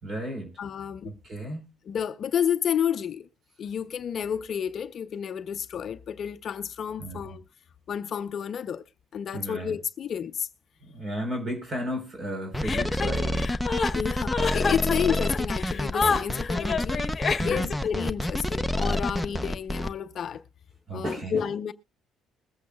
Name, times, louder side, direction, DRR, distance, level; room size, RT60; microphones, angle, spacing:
voice 1, 0.0-0.5 1.0-1.7 7.0-7.2 9.3-9.7 10.9-13.5 17.3-17.7 20.9-21.4, right 1 dB, 35° right, 3.8 m, -34 dB
voice 2, 0.6-1.1 1.8-3.3 3.6-7.4 7.9-8.8 9.1-10.5 13.9-20.4 20.9-21.7, left 8 dB, 50° left, 0.6 m, -30 dB
sound 1, 12.5-19.9, left 1 dB, ahead, 0.7 m, -28 dB
Chuckle chortle, 12.6-17.9, left 5 dB, 30° left, 1.3 m, -28 dB
21.0 x 8.3 x 2.2 m
cardioid pair, 120°, 0 cm